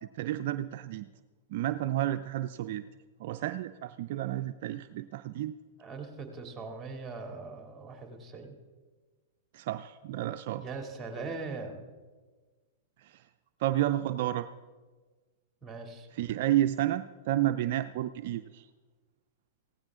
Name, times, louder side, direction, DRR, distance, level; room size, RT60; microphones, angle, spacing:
voice 1, 0.0-1.1 1.5-2.8 3.2-5.5 9.5-10.6 13.0-13.3 13.6-14.5 16.1-18.7, right 13 dB, 60° right, 9 dB, 0.4 m, -31 dB
voice 2, 5.8-8.6 10.6-11.9 15.6-16.1, right 4 dB, 15° right, 3 dB, 2.7 m, -40 dB
16.0 x 15.5 x 3.7 m, 1.4 s
hypercardioid pair, 110°, 0 cm